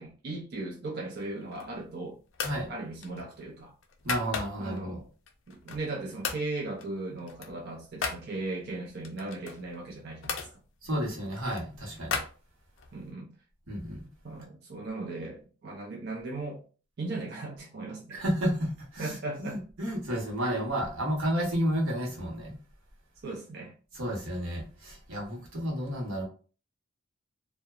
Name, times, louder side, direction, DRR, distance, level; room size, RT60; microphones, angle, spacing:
voice 1, 0.0-2.2 2.7-3.7 4.6-5.1 5.5-10.4 12.9-13.3 14.2-16.6 17.0-18.2 19.0-19.6 23.2-23.7, right 2 dB, 50° right, 0.5 m, -37 dB
sound 1, 1.3-1.9 2.3-2.6 3.0-4.8 5.3-5.9 6.2-6.5 6.8-8.2 9.0-10.5 11.1-12.9, left 5 dB, 65° left, 0.4 m, -37 dB
voice 2, 4.0-5.0 10.8-12.2 13.7-14.0 18.1-22.6 23.9-26.2, equal, 90° right, 1.0 m, -31 dB
2.7 x 2.1 x 2.3 m
head